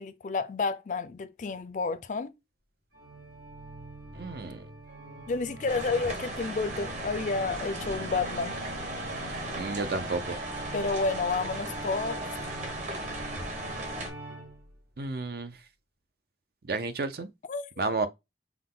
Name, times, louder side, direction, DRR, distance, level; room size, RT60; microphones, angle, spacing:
voice 1, 0.0-2.3 5.3-8.6 10.7-12.3 17.5-17.7, left 4 dB, 45° left, 0.4 m, -30 dB
Organ, 2.9-14.8, right 1 dB, 75° right, 2.9 m, -42 dB
voice 2, 4.1-4.6 9.6-10.4 15.0-15.6 16.7-17.3 17.8-18.1, right 3 dB, 55° right, 0.6 m, -31 dB
sound 1, 5.7-14.1, right 1 dB, 40° right, 1.1 m, -37 dB
5.8 x 2.2 x 3.7 m
head